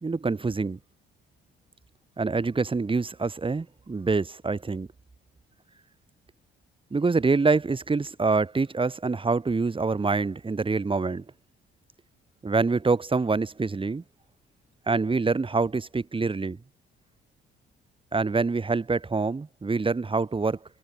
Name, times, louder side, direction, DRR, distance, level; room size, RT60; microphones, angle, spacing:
voice 1, 0.0-0.8 2.2-4.9 6.9-11.2 12.4-14.0 14.9-16.6 18.1-20.6, right 4 dB, 25° right, 4.0 m, -25 dB
cardioid pair, 85°, 21 cm